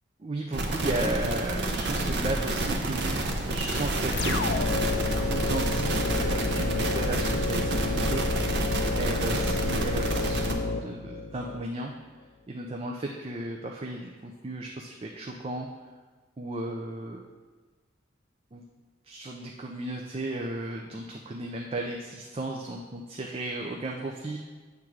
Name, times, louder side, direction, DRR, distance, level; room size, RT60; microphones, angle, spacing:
voice 1, 0.2-3.2 3.5-4.4 5.3-8.2 8.9-11.9 12.5-15.7 16.4-17.2 18.5-18.6 19.0-24.4, right 2 dB, 30° right, 0 dB, 0.4 m, -34 dB
sound 1, 0.5-10.5, right 2 dB, 65° right, 0.7 m, -29 dB
sound 2, 4.1-11.6, left 3 dB, 65° left, 0.4 m, -30 dB
7.8 x 3.6 x 6.0 m, 1.4 s
head